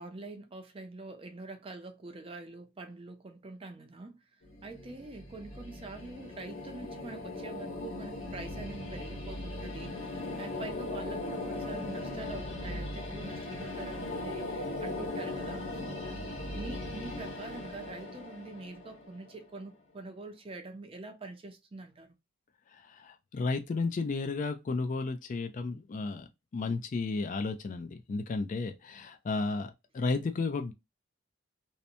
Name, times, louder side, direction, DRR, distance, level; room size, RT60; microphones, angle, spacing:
voice 1, 0.0-4.1 4.6-16.1 16.5-22.2, right 3 dB, 30° right, 0.5 m, -45 dB
sound 1, 4.4-19.5, left 2 dB, 90° left, 1.2 m, -39 dB
voice 2, 22.7-26.3 26.5-30.7, left 3 dB, 40° left, 0.3 m, -33 dB
2.7 x 2.1 x 2.5 m
head